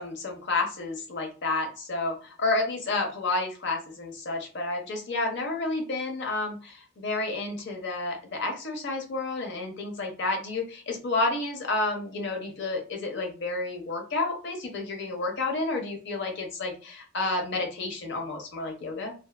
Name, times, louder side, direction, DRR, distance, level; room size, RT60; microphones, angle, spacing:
voice 1, 0.0-19.1, left 2 dB, 65° left, 2 dB, 0.8 m, -30 dB
2.5 x 2.4 x 2.2 m, 0.35 s
head